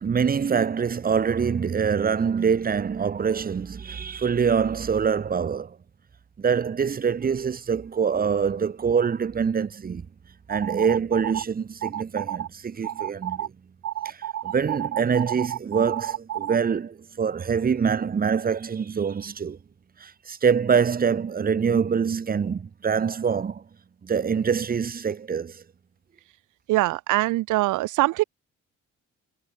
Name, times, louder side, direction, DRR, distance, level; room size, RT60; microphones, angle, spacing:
voice 1, 0.0-5.8 6.4-10.1 10.5-13.5 14.0-14.2 14.4-19.6 20.0-23.6 24.0-25.6, right 6 dB, 30° right, 0.9 m, -25 dB
sound 1, 10.5-11.4 11.8-12.5 12.8-13.5 13.8-16.6, right 11 dB, 60° right, 1.4 m, -31 dB
voice 2, 26.7-28.2, right 18 dB, 85° right, 0.8 m, -22 dB
cardioid pair, 90°, 30 cm